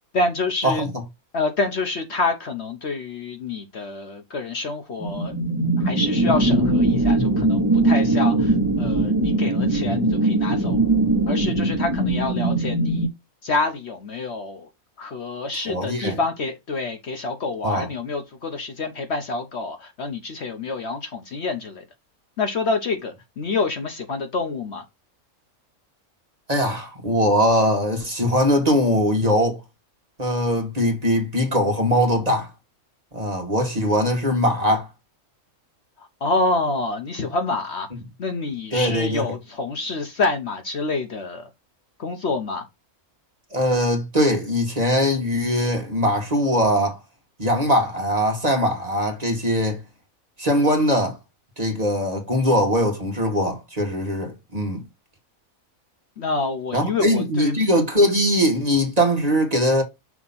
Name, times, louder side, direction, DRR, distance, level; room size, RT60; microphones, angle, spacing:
voice 1, 0.1-0.9 1.3-5.3 5.8-10.8 11.3-13.1 13.4-14.7 15.0-21.8 22.4-24.8 36.0-37.9 38.2-41.5 42.0-42.7 56.2-57.6, left 3 dB, 55° left, 1.0 m, -27 dB
sound 1, 5.0-13.1, right 2 dB, 15° right, 1.5 m, -21 dB
voice 2, 15.7-16.2 17.6-17.9 26.5-29.6 30.2-32.5 33.1-34.9 38.7-39.2 43.5-47.0 47.4-49.8 50.4-51.2 51.6-54.8 56.7-59.8, equal, 30° right, 1.5 m, -21 dB
6.0 x 2.9 x 5.5 m
omnidirectional pair, 1.5 m